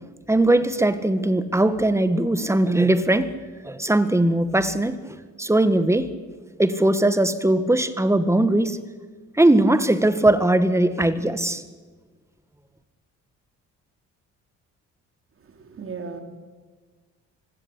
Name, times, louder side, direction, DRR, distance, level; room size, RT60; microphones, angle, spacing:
voice 1, 0.3-3.3 3.6-6.1 6.6-8.8 9.4-11.6, right 1 dB, 10° right, 12 dB, 1.9 m, -20 dB
voice 2, 15.4-16.2, right 5 dB, 45° right, 6 dB, 4.2 m, -36 dB
24.5 x 16.5 x 10.0 m, 1.4 s
cardioid pair, 90°, 30 cm